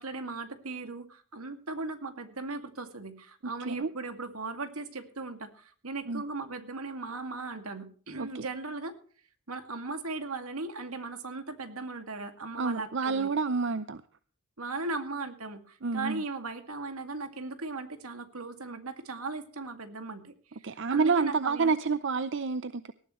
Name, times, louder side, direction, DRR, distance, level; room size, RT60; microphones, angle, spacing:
voice 1, 0.0-8.9 9.5-13.3 14.6-21.7, right 3 dB, 80° right, 8 dB, 2.2 m, -38 dB
voice 2, 12.6-14.0 15.8-16.2 20.6-22.9, right 4 dB, 55° right, 14 dB, 0.6 m, -28 dB
19.0 x 14.0 x 3.1 m, 0.43 s
head